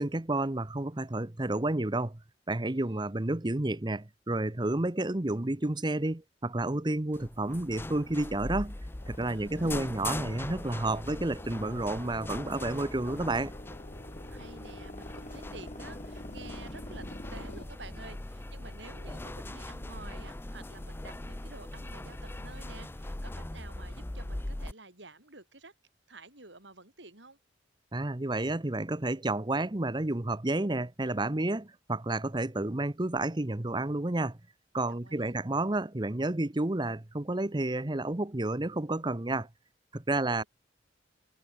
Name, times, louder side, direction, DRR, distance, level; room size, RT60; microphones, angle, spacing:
voice 1, 0.0-2.2 2.5-8.7 9.1-13.5 27.9-34.4 34.7-39.5 39.9-40.4, right 2 dB, 25° right, 0.9 m, -30 dB
voice 2, 2.8-3.1 9.3-10.0 14.3-25.7 26.1-27.4 34.9-35.4 40.1-40.5, right 3 dB, 80° right, 6.9 m, -51 dB
sound 1, 7.1-24.7, left 1 dB, 10° left, 0.5 m, -41 dB
sound 2, 9.0-17.6, left 1 dB, 40° left, 6.3 m, -47 dB
head